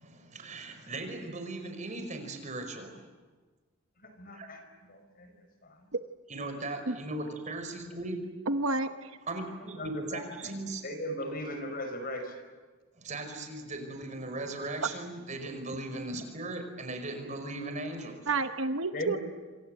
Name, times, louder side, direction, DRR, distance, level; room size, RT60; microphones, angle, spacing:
voice 1, 0.0-3.1 4.3-4.5 6.3-8.3 9.3-10.8 13.0-18.3, right 2 dB, 35° right, 6 dB, 5.3 m, -38 dB
voice 2, 4.2-4.6 4.9-5.3 9.8-10.5 10.8-12.2 18.9-19.2, equal, 40° left, 7 dB, 5.1 m, -37 dB
voice 3, 8.5-9.2 18.3-19.2, right 3 dB, 65° right, 8 dB, 1.0 m, -30 dB
27.5 x 27.5 x 7.9 m, 1.4 s
head